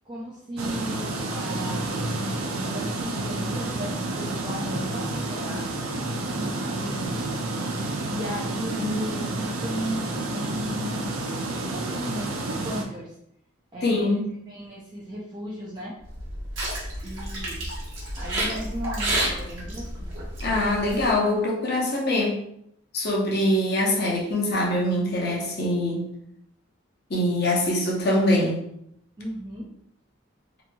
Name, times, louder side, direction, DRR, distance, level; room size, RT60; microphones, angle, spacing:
voice 1, 0.1-5.7 6.4-7.4 8.1-10.1 10.3-11.4 11.7-13.1 13.7-16.0 17.0-17.6 18.2-20.1 29.2-29.7, equal, 20° right, -6 dB, 0.4 m, -36 dB
sound 1, 0.6-12.8, right 2 dB, 85° right, 0.5 m, -30 dB
voice 2, 8.8-9.3 13.8-14.3 20.4-22.4 22.9-26.1 27.1-28.6, left 1 dB, 50° left, -2 dB, 0.7 m, -23 dB
sound 2, 16.1-21.1, right 1 dB, 65° right, 1.0 m, -30 dB
2.9 x 2.6 x 2.2 m, 0.75 s
head